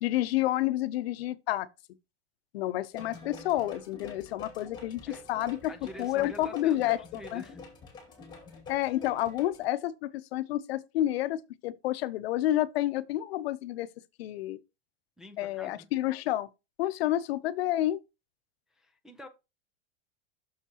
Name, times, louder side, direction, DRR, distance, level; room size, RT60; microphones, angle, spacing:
voice 1, 0.0-1.7 2.5-5.6 6.0-7.4 8.7-13.9 14.2-14.6 15.4-16.5 16.8-18.0, left 14 dB, 80° left, 0.7 m, -29 dB
sound 1, 2.9-9.7, left 4 dB, 15° left, 2.2 m, -47 dB
voice 2, 5.7-7.7 15.2-15.9 18.8-19.3, left 1 dB, ahead, 0.4 m, -46 dB
8.2 x 6.5 x 2.9 m
supercardioid pair, 170°, 30 cm